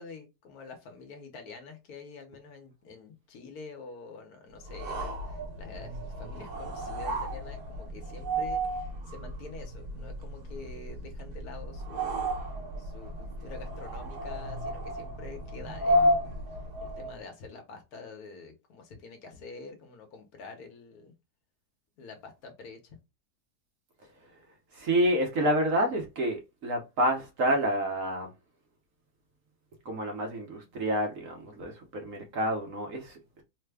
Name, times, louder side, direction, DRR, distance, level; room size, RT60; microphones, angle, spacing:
voice 1, 0.0-12.4 12.8-16.3 16.8-21.1 22.0-23.0, left 4 dB, 70° left, 1.2 m, -47 dB
sound 1, 4.6-17.2, equal, 75° right, 1.3 m, -33 dB
voice 2, 24.7-28.3 29.8-33.4, right 1 dB, 60° right, 1.1 m, -28 dB
3.2 x 2.1 x 3.3 m
omnidirectional pair, 1.7 m